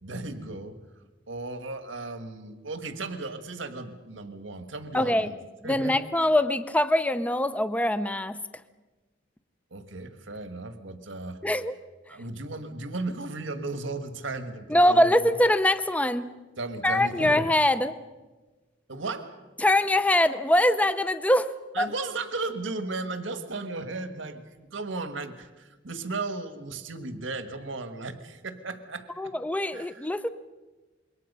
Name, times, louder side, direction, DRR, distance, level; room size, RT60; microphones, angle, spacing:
voice 1, 0.0-0.8 1.3-5.3 5.6-6.0 9.7-11.4 12.1-15.1 16.6-17.5 18.9-19.3 21.7-29.3 29.7-30.1, right 3 dB, 80° right, 9 dB, 1.6 m, -35 dB
voice 2, 4.9-5.3 5.6-8.4 11.4-11.7 14.7-16.3 16.8-18.0 19.6-21.5 21.8-21.9 29.2-30.3, left 1 dB, 10° left, 12 dB, 0.6 m, -23 dB
27.0 x 22.5 x 5.5 m, 1.2 s
head